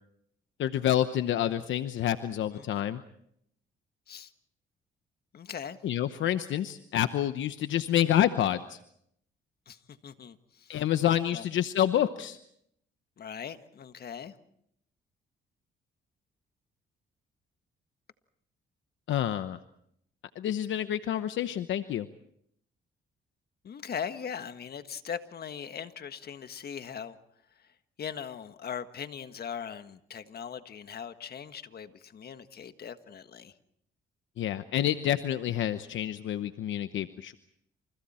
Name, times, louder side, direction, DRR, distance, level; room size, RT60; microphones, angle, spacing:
voice 1, 0.6-3.0 5.8-8.8 10.7-12.4 19.1-19.6 20.4-22.1 34.4-37.4, left 11 dB, 75° left, 10 dB, 1.0 m, -28 dB
voice 2, 5.3-5.8 9.7-9.8 10.0-10.8 11.3-11.5 13.2-14.3 23.6-27.2 28.0-33.5, left 7 dB, 50° left, 9 dB, 1.6 m, -40 dB
29.5 x 28.5 x 4.4 m, 0.71 s
cardioid pair, 90°, 20 cm